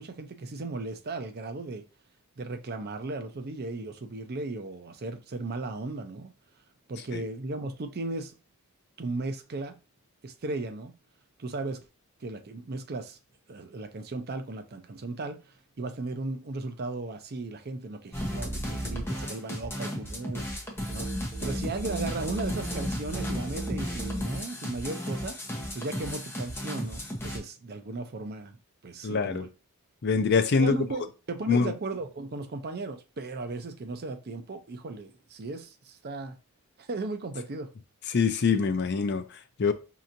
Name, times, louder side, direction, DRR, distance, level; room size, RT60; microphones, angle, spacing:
voice 1, 0.0-1.9 2.4-6.3 6.9-8.3 9.0-9.8 10.2-11.0 11.4-11.8 12.2-13.2 13.5-15.4 15.8-20.5 20.9-21.1 21.4-25.4 25.7-28.6 28.8-29.5 30.5-36.4 36.8-37.7, right 3 dB, 45° right, 0.5 m, -36 dB
sound 1, 18.1-27.4, equal, 10° left, 0.8 m, -34 dB
voice 2, 29.0-29.5 30.0-30.8 31.5-31.7 38.1-39.7, left 5 dB, 50° left, 0.5 m, -24 dB
5.4 x 2.9 x 2.5 m
head